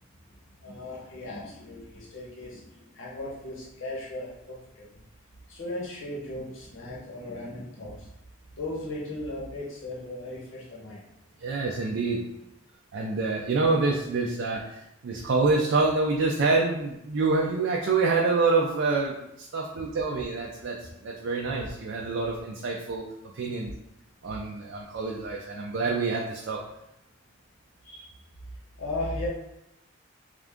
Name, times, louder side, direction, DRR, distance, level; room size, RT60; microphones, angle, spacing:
voice 1, 0.2-5.0 5.5-8.1 8.6-11.0 27.8-28.1 28.8-29.3, left 1 dB, 70° left, -5 dB, 0.9 m, -37 dB
voice 2, 11.4-12.3 12.9-23.0 23.3-23.7 24.2-26.6, right 3 dB, 60° right, -1 dB, 0.4 m, -27 dB
3.6 x 2.5 x 3.5 m, 0.85 s
head